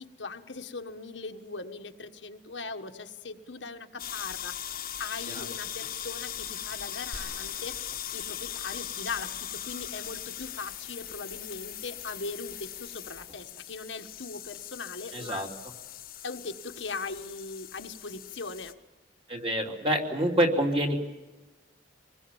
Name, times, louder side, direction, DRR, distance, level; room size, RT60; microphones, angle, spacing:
voice 1, 0.0-7.8 8.1-15.4 16.2-18.8, left 4 dB, 75° left, 6 dB, 1.5 m, -40 dB
sound 1, 4.0-18.7, left 10 dB, 50° left, 1.3 m, -39 dB
sound 2, 7.1-9.4, right 1 dB, 90° right, 3.4 m, -48 dB
voice 2, 15.1-15.5 19.3-21.0, right 1 dB, 30° right, 1 dB, 3.1 m, -27 dB
26.0 x 20.5 x 7.2 m, 1.2 s
head